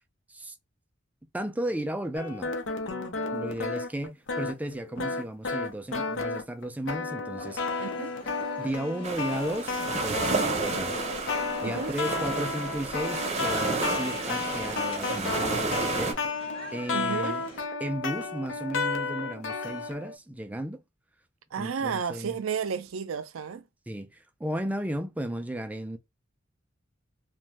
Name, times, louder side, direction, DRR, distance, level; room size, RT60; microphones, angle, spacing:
voice 1, 1.3-2.5 3.3-7.9 8.6-10.9 11.6-17.4 17.8-20.8 21.6-22.4 23.9-26.0, right 1 dB, 10° right, 0.3 m, -34 dB
sound 1, 2.1-20.2, left 4 dB, 65° left, 0.7 m, -33 dB
sound 2, 7.4-17.7, left 2 dB, 25° left, 1.1 m, -46 dB
voice 2, 7.8-8.1 11.6-11.9 16.9-17.4 21.5-23.6, right 6 dB, 85° right, 0.5 m, -32 dB
sound 3, 9.0-16.1, right 3 dB, 35° right, 0.7 m, -31 dB
2.6 x 2.2 x 3.1 m
head